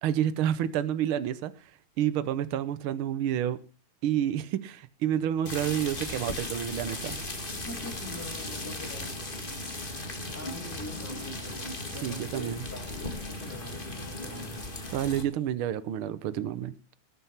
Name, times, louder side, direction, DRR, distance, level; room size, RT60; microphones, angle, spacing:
voice 1, 0.0-1.5 2.0-3.6 4.0-7.2 12.0-12.6 14.9-16.9, right 10 dB, 80° right, 1.2 m, -29 dB
sound 1, 5.4-15.2, left 2 dB, 20° left, 1.5 m, -37 dB
voice 2, 7.5-9.4 10.3-14.6, left 1 dB, 5° left, 2.8 m, -44 dB
20.0 x 7.9 x 5.8 m
omnidirectional pair, 3.6 m